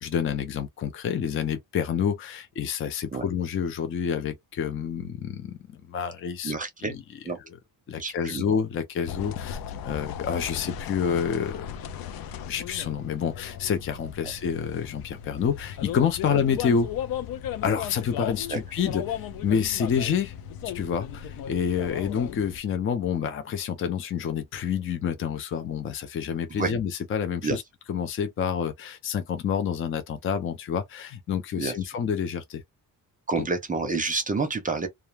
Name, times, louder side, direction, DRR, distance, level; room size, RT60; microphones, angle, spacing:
voice 1, 0.0-6.5 6.8-7.0 7.9-11.7 12.5-16.9 17.6-20.3 20.6-27.6 27.9-32.6 33.4-33.5, left 7 dB, 35° left, 0.4 m, -28 dB
voice 2, 6.4-7.0 7.2-7.4 8.0-8.4 18.5-18.6 26.5-26.7 27.4-27.6 31.5-31.7 33.3-34.9, right 4 dB, 25° right, 0.6 m, -28 dB
sound 1, 9.1-22.6, left 9 dB, 85° left, 0.5 m, -36 dB
2.3 x 2.1 x 3.1 m
cardioid pair, 140°, 35 cm